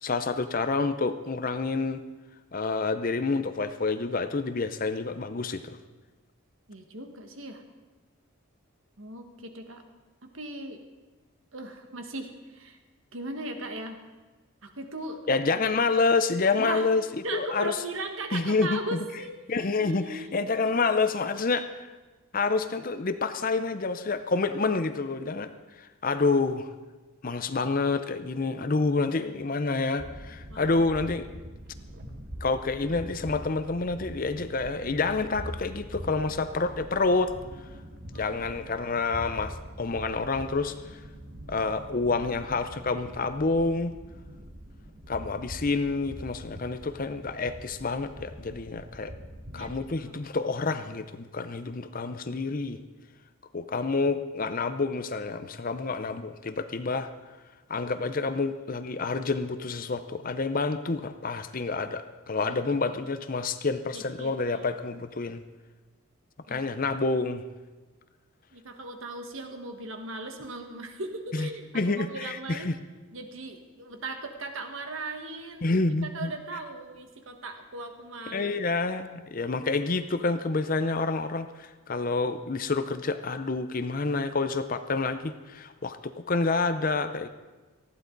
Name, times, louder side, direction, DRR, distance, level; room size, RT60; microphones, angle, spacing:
voice 1, 0.0-2.0 2.5-5.8 15.3-17.0 17.3-17.7 18.3-18.8 19.5-21.9 22.3-25.5 25.8-26.7 27.2-31.3 32.4-37.3 38.1-41.0 41.5-43.9 45.1-49.1 49.5-52.8 53.5-57.1 57.7-65.4 66.5-67.4 71.3-71.5 71.7-72.8 75.6-76.3 78.3-87.3, left 3 dB, 40° left, 10 dB, 0.6 m, -28 dB
voice 2, 6.7-7.6 9.0-9.8 10.2-10.8 11.5-12.8 13.1-14.0 14.6-15.6 16.6-16.9 17.2-19.3 19.8-20.4 20.7-20.9 30.5-30.8 38.1-38.7 49.5-49.7 50.0-50.1 62.4-62.6 62.9-63.0 63.9-64.8 66.5-66.6 68.5-72.7 73.1-75.7 76.0-78.6, right 2 dB, 70° right, 5 dB, 1.6 m, -38 dB
sound 1, 30.0-49.9, equal, 50° right, 1.6 m, -43 dB
19.5 x 14.5 x 4.0 m, 1.2 s
head